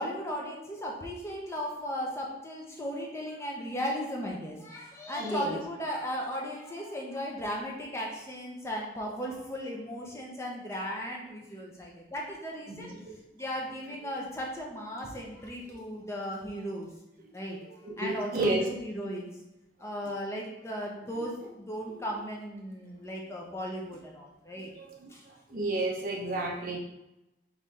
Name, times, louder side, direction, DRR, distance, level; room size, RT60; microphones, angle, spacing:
voice 1, 0.0-12.9 13.3-16.9 17.3-19.3 19.8-24.7 25.1-25.2, equal, 15° left, -2 dB, 0.6 m, -36 dB
voice 2, 5.2-5.6 12.7-13.2 17.8-18.7 21.1-21.2 21.9-22.0 24.6-25.1 25.5-26.8, right 2 dB, 45° right, -1 dB, 0.7 m, -32 dB
3.7 x 3.2 x 4.0 m, 0.92 s
head